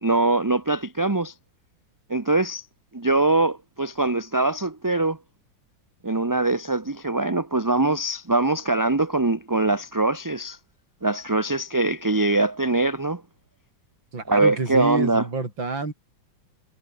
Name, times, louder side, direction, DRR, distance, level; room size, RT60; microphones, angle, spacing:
voice 1, 0.0-1.3 2.1-2.7 2.9-5.2 6.0-10.6 11.0-13.2 14.3-15.3, right 2 dB, 15° right, 0.7 m, -22 dB
voice 2, 14.1-15.9, right 3 dB, 75° right, 5.8 m, -28 dB
omnidirectional pair, 2.1 m